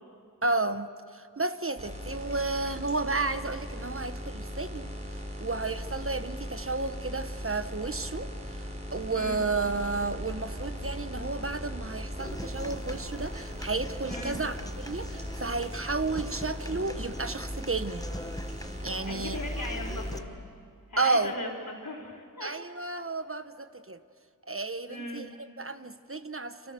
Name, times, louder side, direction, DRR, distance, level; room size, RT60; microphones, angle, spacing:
voice 1, 0.4-4.9 5.4-8.3 8.9-18.1 18.8-19.4 21.0-21.3 22.4-24.0 24.5-26.7, right 3 dB, 40° right, 10 dB, 1.1 m, -32 dB
sound 1, 1.8-20.2, equal, 20° right, 4.7 m, -38 dB
Human voice / Acoustic guitar, 12.2-20.2, left 1 dB, 10° left, 0.9 m, -45 dB
voice 2, 14.1-14.4 19.0-20.3 20.9-22.6 24.9-25.3, left 1 dB, 70° left, -1 dB, 4.5 m, -38 dB
29.5 x 27.0 x 6.9 m, 2.3 s
wide cardioid pair, 55°, 35 cm